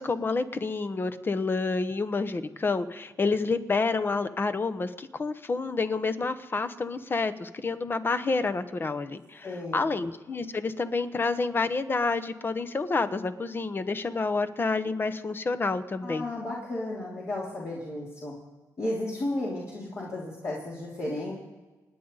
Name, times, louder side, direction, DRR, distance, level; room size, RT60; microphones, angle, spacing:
voice 1, 0.0-9.5 9.7-16.2, left 3 dB, 35° left, 11 dB, 1.0 m, -29 dB
voice 2, 9.4-9.9 16.0-18.3 18.8-21.3, left 1 dB, 50° left, -6 dB, 3.3 m, -33 dB
28.5 x 9.6 x 4.1 m, 1.2 s
cardioid pair, 85°, 7 cm